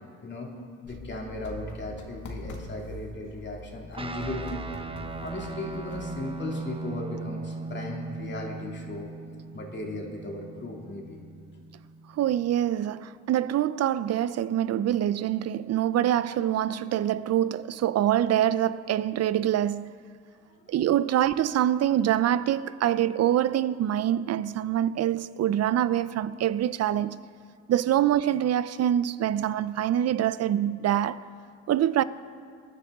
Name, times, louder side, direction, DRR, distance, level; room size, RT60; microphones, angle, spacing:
sound 1, 0.8-6.3, left 2 dB, 70° left, 2.0 m, -42 dB
voice 1, 0.8-4.6 5.2-9.1 9.5-11.2, left 2 dB, 35° left, 2.6 m, -37 dB
Guitar, 3.9-12.7, right 3 dB, 20° right, 0.9 m, -39 dB
voice 2, 12.1-19.9 20.7-27.2 27.7-31.2 31.7-32.0, right 11 dB, 55° right, 0.5 m, -25 dB
22.5 x 10.0 x 3.6 m
cardioid pair, 90°, 30 cm